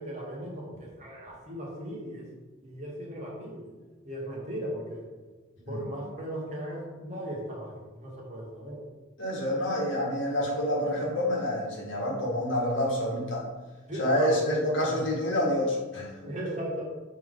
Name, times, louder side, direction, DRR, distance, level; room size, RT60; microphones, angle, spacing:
voice 1, 0.0-2.3 2.6-3.7 4.0-5.1 5.7-8.8 13.9-14.5 16.2-16.8, right 1 dB, 35° right, -3 dB, 1.5 m, -37 dB
voice 2, 9.2-13.5 14.0-16.1, left 1 dB, 70° left, -3 dB, 1.8 m, -28 dB
6.4 x 4.4 x 3.8 m, 1.3 s
head